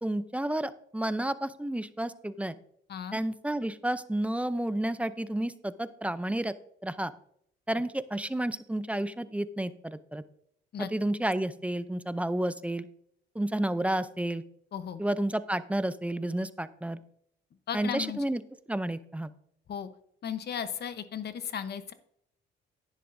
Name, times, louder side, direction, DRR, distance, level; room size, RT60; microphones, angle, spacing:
voice 1, 0.0-2.6 3.1-6.5 6.8-7.1 7.7-10.2 10.8-12.9 13.3-14.4 15.0-17.0 17.7-18.4 18.7-19.3, right 1 dB, 5° right, 13 dB, 0.5 m, -31 dB
voice 2, 17.7-18.2 19.7-19.9 20.2-21.9, left 8 dB, 55° left, 11 dB, 0.9 m, -35 dB
10.5 x 10.0 x 2.6 m, 0.68 s
cardioid pair, 90°, 20 cm